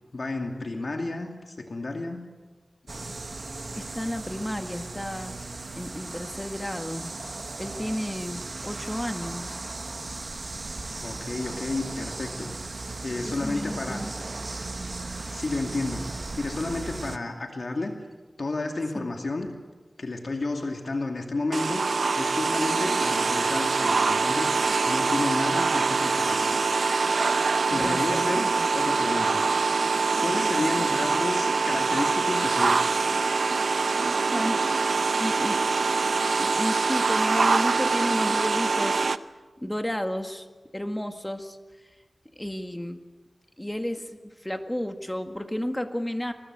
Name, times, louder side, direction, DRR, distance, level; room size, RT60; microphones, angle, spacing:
voice 1, 0.1-2.2 11.0-12.5 13.0-14.0 15.3-17.9 18.4-19.5 20.0-21.8 22.2-24.5 24.9-26.5 27.7-29.4 30.2-32.8, left 2 dB, 60° left, 3 dB, 2.5 m, -31 dB
sound 1, 2.9-17.2, right 3 dB, 55° right, 1.1 m, -37 dB
voice 2, 3.8-5.4 5.8-7.1 7.6-9.6 13.2-14.1 14.4-14.5 19.0-19.1 27.7-28.7 30.8-30.9 34.3-34.7 35.2-35.6 36.4-39.1 39.6-40.5 40.7-41.6 42.4-43.1 43.6-46.3, equal, 10° left, 6 dB, 1.8 m, -32 dB
sound 2, 21.5-39.2, right 4 dB, 80° right, 0.7 m, -24 dB
23.5 x 19.5 x 8.1 m, 1.3 s
wide cardioid pair, 65°, 0 cm